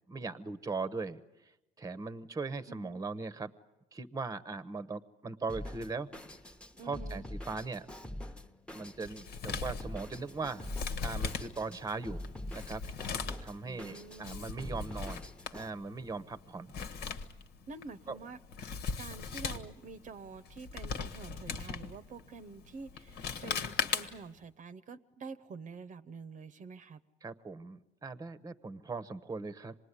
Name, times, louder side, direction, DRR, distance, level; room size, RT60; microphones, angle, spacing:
voice 1, 0.1-1.2 1.8-3.5 3.9-6.1 6.8-7.9 8.7-10.7 11.0-12.2 12.5-12.8 13.4-15.2 15.5-16.8 18.1-18.2 27.2-29.7, right 4 dB, 20° right, 12 dB, 0.9 m, -39 dB
voice 2, 2.7-3.0 6.8-7.2 13.6-14.5 17.7-27.0, right 4 dB, 50° right, 12 dB, 0.8 m, -48 dB
Drum kit, 5.5-15.7, left 1 dB, 5° left, 1.0 m, -45 dB
Male speech man speaking, 9.0-24.4, left 5 dB, 75° left, 1.5 m, -40 dB
26.5 x 20.0 x 9.8 m, 0.96 s
cardioid pair, 110°, 17 cm